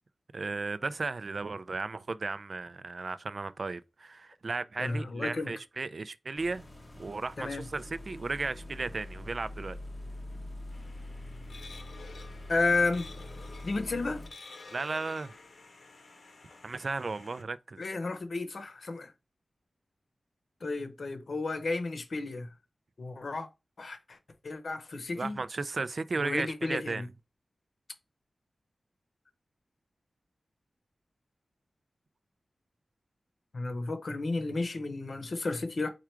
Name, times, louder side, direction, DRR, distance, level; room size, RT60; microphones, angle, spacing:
voice 1, 0.3-6.7 6.9-9.8 14.7-15.3 16.6-17.8 25.2-27.1, right 3 dB, 55° right, 0.4 m, -35 dB
voice 2, 4.8-5.5 7.4-7.7 12.5-13.1 13.6-14.2 17.8-19.1 20.6-22.5 23.0-23.5 23.8-24.2 24.4-25.4 26.2-27.1 33.5-35.9, left 3 dB, 60° left, 0.8 m, -32 dB
sound 1, 6.4-14.3, left 1 dB, 25° left, 0.6 m, -44 dB
sound 2, 10.7-17.4, left 3 dB, 85° left, 0.9 m, -51 dB
4.6 x 2.4 x 4.4 m
wide cardioid pair, 105°, 0 cm